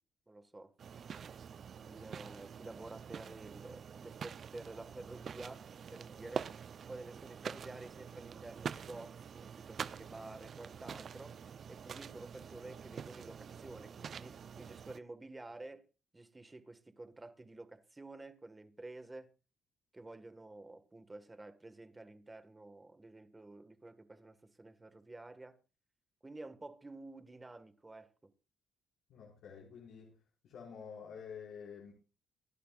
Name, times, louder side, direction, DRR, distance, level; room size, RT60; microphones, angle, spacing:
voice 1, 0.3-0.7 1.8-6.5 6.9-11.4 11.7-15.9 16.1-19.3 19.9-25.6 26.2-28.3, right 2 dB, 20° right, 1.7 m, -51 dB
sound 1, 0.8-15.0, right 7 dB, 50° right, 0.6 m, -46 dB
voice 2, 29.1-30.1 30.4-31.9, left 6 dB, 80° left, 5.6 m, -49 dB
25.0 x 11.5 x 2.5 m
cardioid pair, 90°, 0 cm